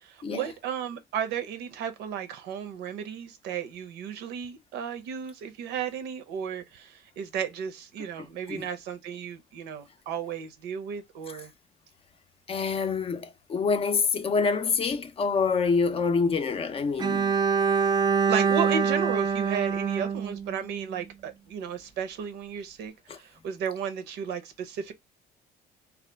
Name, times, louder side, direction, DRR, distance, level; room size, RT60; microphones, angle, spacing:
voice 1, 0.0-11.5 18.3-24.9, right 7 dB, 85° right, 0.6 m, -34 dB
voice 2, 12.5-17.4 23.1-23.2, left 5 dB, 35° left, 0.4 m, -26 dB
Bowed string instrument, 17.0-21.0, right 6 dB, 25° right, 0.4 m, -25 dB
2.7 x 2.4 x 3.2 m
cardioid pair, 110°, 17 cm